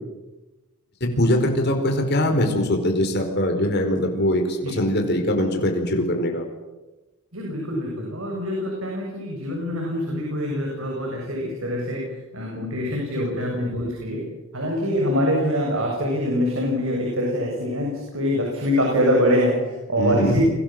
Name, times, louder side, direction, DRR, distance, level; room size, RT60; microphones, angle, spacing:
voice 1, 1.0-6.4 13.4-13.5 20.0-20.5, left 1 dB, 50° left, 4 dB, 4.5 m, -22 dB
voice 2, 7.3-14.3 14.5-20.4, equal, 70° right, -1 dB, 7.5 m, -24 dB
30.0 x 23.5 x 7.7 m, 1.1 s
head